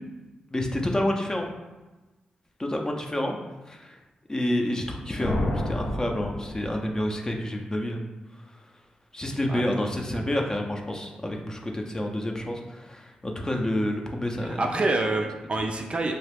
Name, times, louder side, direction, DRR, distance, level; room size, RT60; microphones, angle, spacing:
voice 1, 0.5-1.5 2.6-3.4 3.7-4.0 4.3-8.0 8.3-8.4 9.1-14.7, left 1 dB, 20° left, 2 dB, 0.5 m, -29 dB
sound 1, 5.2-7.2, left 1 dB, 70° left, 0.6 m, -30 dB
voice 2, 14.4-16.2, right 2 dB, 40° right, 3 dB, 0.4 m, -27 dB
2.9 x 2.3 x 3.3 m, 1.1 s
cardioid pair, 70°, 3 cm